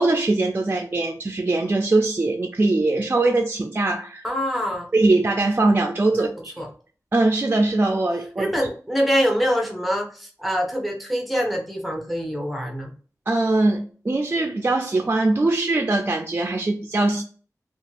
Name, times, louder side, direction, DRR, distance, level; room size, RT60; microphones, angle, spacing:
voice 1, 0.0-4.2 4.9-6.5 7.1-8.5 13.3-17.2, right 2 dB, 35° right, 0.4 m, -21 dB
voice 2, 4.2-4.9 6.1-6.7 8.4-12.9, equal, ahead, 0.8 m, -25 dB
2.8 x 2.3 x 2.9 m
wide cardioid pair, 80°, 6 cm